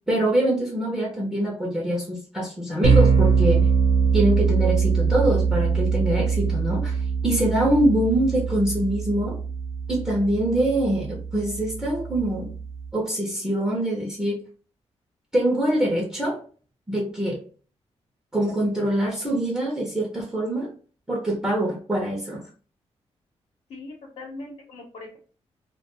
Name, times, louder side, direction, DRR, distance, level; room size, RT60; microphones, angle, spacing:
voice 1, 0.1-3.7 4.1-9.4 9.9-12.5 12.9-14.4 15.3-16.4 16.9-17.4 18.3-20.7 21.1-22.4, right 1 dB, 5° right, 0.5 m, -24 dB
sound 1, 2.8-12.9, right 5 dB, 75° right, 0.6 m, -23 dB
voice 2, 23.7-25.2, left 2 dB, 75° left, 0.9 m, -40 dB
2.3 x 2.2 x 2.9 m
wide cardioid pair, 165°, 11 cm